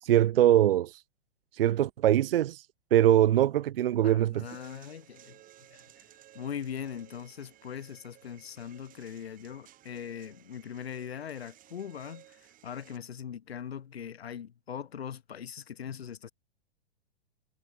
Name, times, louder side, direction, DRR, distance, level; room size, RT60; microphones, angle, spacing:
voice 1, 0.0-1.0 1.5-2.7 2.9-4.5, right 12 dB, 60° right, 0.5 m, -23 dB
voice 2, 4.0-5.4 5.7-5.8 6.3-16.3, left 8 dB, 70° left, 1.0 m, -41 dB
sound 1, 4.5-13.0, right 13 dB, 25° right, 6.0 m, -57 dB
figure-of-eight pair, 110°, 32 cm